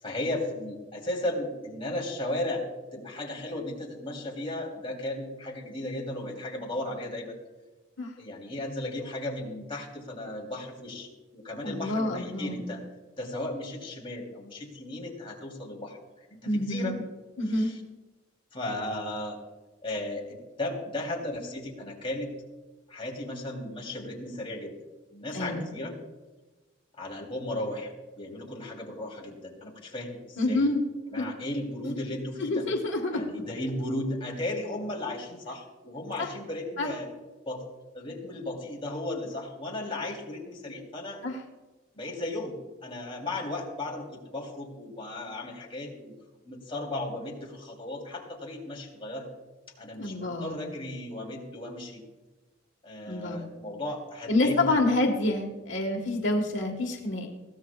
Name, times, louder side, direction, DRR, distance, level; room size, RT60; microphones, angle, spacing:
voice 1, 0.0-2.6 2.9-7.4 8.2-12.8 13.2-17.0 17.4-17.8 18.5-19.4 19.8-22.3 22.9-24.7 25.1-25.9 27.0-27.9 28.2-30.7 31.1-32.6 33.1-37.1 37.4-37.6 37.9-41.2 41.9-46.1 46.4-49.3 49.8-52.0 52.8-55.0, left 1 dB, 25° left, -2 dB, 3.1 m, -35 dB
voice 2, 11.6-12.7 16.4-17.0 17.4-17.7 25.3-25.7 30.4-30.8 31.2-31.3 32.4-33.2 36.2-36.3 36.8-36.9 41.2-41.4 50.0-50.6 53.1-53.5 54.3-57.3, left 2 dB, 70° left, 1 dB, 1.5 m, -27 dB
21.5 x 16.0 x 2.4 m, 1.2 s
head